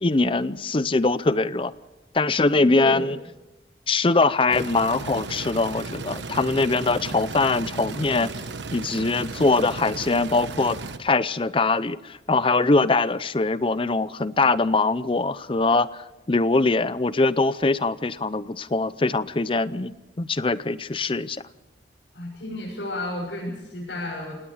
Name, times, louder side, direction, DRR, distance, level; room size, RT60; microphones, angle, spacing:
voice 1, 0.0-1.7 2.1-3.2 3.9-8.3 8.7-21.4, left 3 dB, 30° left, 16 dB, 0.6 m, -22 dB
voice 2, 2.5-3.1 22.1-24.4, left 1 dB, 85° left, -6 dB, 6.9 m, -32 dB
sound 1, 4.5-11.0, right 3 dB, 90° right, 1.2 m, -35 dB
28.5 x 18.5 x 5.0 m, 1.0 s
head